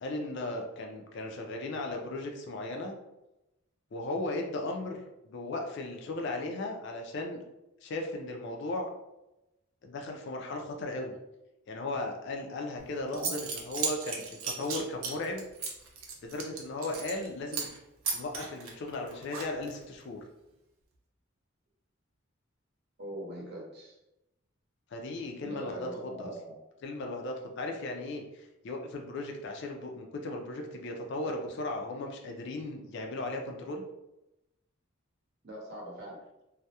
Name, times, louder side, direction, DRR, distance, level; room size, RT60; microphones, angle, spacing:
voice 1, 0.0-2.9 3.9-7.4 7.8-8.9 9.8-11.1 11.7-15.4 16.2-17.7 18.1-20.2 24.9-26.3 26.8-33.8, left 2 dB, 55° left, 2 dB, 0.4 m, -36 dB
Zipper (clothing) / Coin (dropping), 12.8-12.9 13.1-17.3 17.5-17.8 18.0-19.8, right 5 dB, 85° right, 0.5 m, -35 dB
voice 2, 23.0-24.0 25.4-26.5 35.4-36.2, right 1 dB, 55° right, -2 dB, 0.7 m, -41 dB
2.2 x 2.0 x 2.7 m, 0.93 s
head